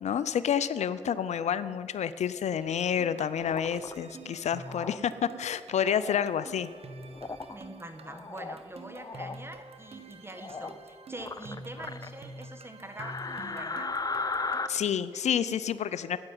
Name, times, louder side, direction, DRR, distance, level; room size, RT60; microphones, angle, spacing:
voice 1, 0.0-6.7 14.7-16.2, left 8 dB, 65° left, 15 dB, 0.5 m, -29 dB
sound 1, 2.6-14.9, right 2 dB, 55° right, 1.2 m, -48 dB
sound 2, 3.4-3.9 4.7-5.0 5.7-6.3 7.1-7.6 8.0-8.6 8.9-9.4 10.4-10.8 11.2-12.1 13.0-14.7, left 3 dB, 30° left, 0.7 m, -36 dB
voice 2, 7.5-13.9, right 1 dB, 20° right, 7 dB, 1.6 m, -44 dB
9.5 x 8.7 x 9.5 m, 2.2 s
supercardioid pair, 45°, 12 cm